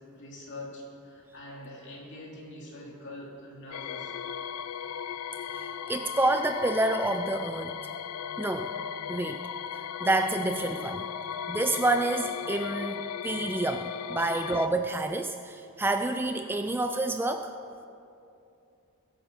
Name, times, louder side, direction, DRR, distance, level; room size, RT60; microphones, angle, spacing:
voice 1, 0.1-4.1 14.2-14.4, left 1 dB, 55° left, -3 dB, 3.1 m, -44 dB
sound 1, 3.7-14.7, left 8 dB, 80° left, 0.5 m, -36 dB
voice 2, 5.5-7.8 8.4-8.7 9.1-9.4 10.0-11.1 11.5-17.5, right 2 dB, 10° right, 7 dB, 0.4 m, -28 dB
21.0 x 8.5 x 5.5 m, 2.6 s
head